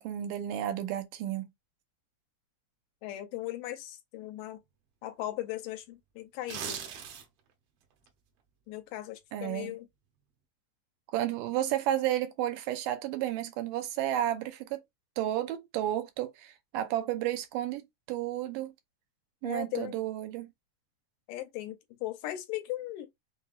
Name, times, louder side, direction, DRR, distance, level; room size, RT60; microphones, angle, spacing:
voice 1, 0.0-1.5 9.3-9.8 11.1-14.8 15.2-17.8 18.1-18.7 19.4-20.5, right 12 dB, 90° right, 2.3 m, -32 dB
voice 2, 3.0-4.6 5.0-6.8 8.7-9.9 19.4-20.0 21.3-23.1, left 14 dB, 85° left, 2.3 m, -38 dB
sound 1, 6.3-7.5 7.9-8.1, right 8 dB, 75° right, 1.4 m, -38 dB
5.9 x 2.8 x 2.4 m
omnidirectional pair, 3.7 m